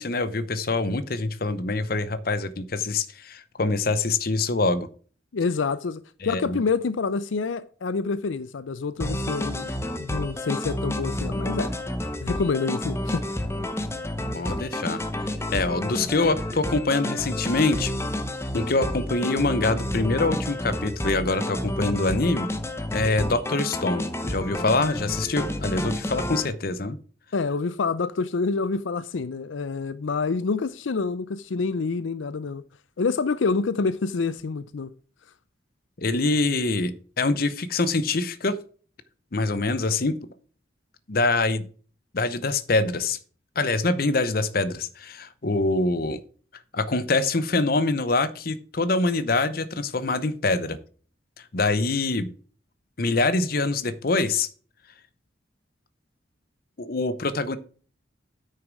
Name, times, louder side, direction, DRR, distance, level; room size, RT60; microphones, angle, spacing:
voice 1, 0.0-4.9 6.2-6.6 14.3-15.0 15.5-17.9 18.5-22.5 22.9-27.0 36.0-38.6 39.3-40.1 41.1-41.6 42.1-43.2 43.6-46.2 46.7-50.8 51.4-52.3 53.0-54.5 56.8-57.6, left 3 dB, 50° left, 0.8 m, -25 dB
voice 2, 5.3-9.7 10.0-11.7 12.2-13.2 27.3-32.6 33.0-34.9, left 4 dB, 85° left, 0.5 m, -27 dB
sound 1, 9.0-26.5, left 1 dB, 15° left, 0.9 m, -30 dB
9.1 x 6.6 x 4.7 m
head